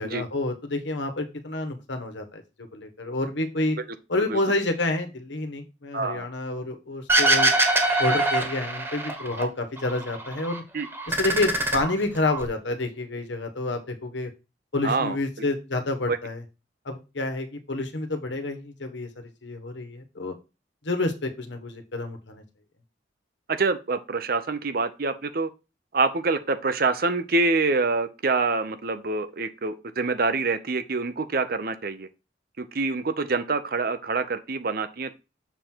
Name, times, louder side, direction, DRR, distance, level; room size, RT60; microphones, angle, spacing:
voice 1, 0.0-2.4 2.7-3.8 4.1-7.5 8.0-10.6 11.1-14.3 14.7-16.4 16.8-20.3 20.8-22.4, left 2 dB, 80° left, 1.3 m, -29 dB
voice 2, 5.9-6.3 10.7-10.9 14.8-15.2 16.1-16.2 23.5-25.5 25.9-32.1 32.6-35.1, right 3 dB, 55° right, 0.7 m, -26 dB
sound 1, 7.1-9.4 9.8-10.6 10.9-12.4, right 2 dB, 15° right, 1.3 m, -23 dB
6.9 x 3.8 x 4.4 m
head